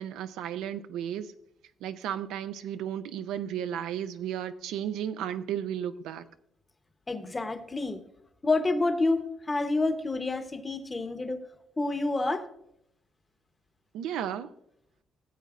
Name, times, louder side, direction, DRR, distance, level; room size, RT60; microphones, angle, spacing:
voice 1, 0.0-1.3 1.8-6.3 13.9-14.5, right 10 dB, 90° right, 0.5 m, -34 dB
voice 2, 7.1-8.0 8.4-11.4 11.8-12.4, left 2 dB, 25° left, 1.0 m, -28 dB
16.0 x 8.0 x 2.5 m
cardioid pair, 90°, 0 cm